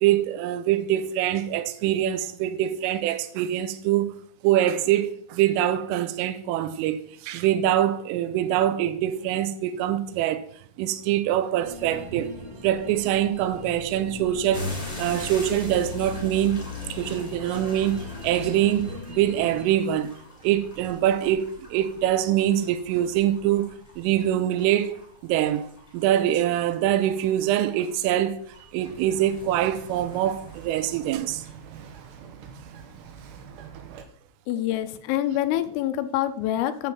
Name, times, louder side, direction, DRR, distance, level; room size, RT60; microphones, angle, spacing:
voice 1, 0.0-4.1 4.4-10.5 10.8-12.4 12.6-16.6 16.9-20.1 20.4-23.7 24.0-25.0 25.2-28.4 28.7-31.4, right 12 dB, 85° right, 3.3 m, -24 dB
sound 1, 11.6-19.7, left 4 dB, 35° right, 2.1 m, -39 dB
sound 2, 14.5-31.1, left 2 dB, 10° left, 1.7 m, -42 dB
Bird vocalization bird call bird song, 28.8-34.0, right 7 dB, 70° right, 2.8 m, -44 dB
voice 2, 34.5-36.9, left 12 dB, 80° left, 3.2 m, -26 dB
9.1 x 7.5 x 7.7 m
omnidirectional pair, 6.0 m